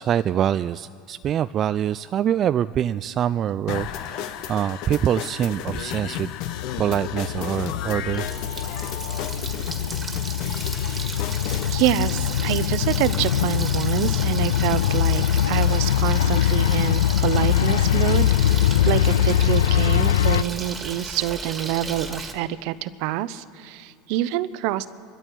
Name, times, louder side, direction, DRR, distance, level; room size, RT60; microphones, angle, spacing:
voice 1, 0.0-6.3 6.8-8.3, right 10 dB, 40° right, 13 dB, 0.3 m, -24 dB
sound 1, 3.7-11.7, left 10 dB, 60° left, 1.0 m, -33 dB
sound 2, 6.5-20.4, left 11 dB, 90° left, 0.3 m, -22 dB
Water tap faucet, 7.9-22.3, right 3 dB, 20° right, 1.8 m, -35 dB
voice 2, 11.7-24.9, right 13 dB, 65° right, 16 dB, 0.7 m, -26 dB
25.0 x 12.5 x 4.6 m, 2.3 s
supercardioid pair, 100°, 0 cm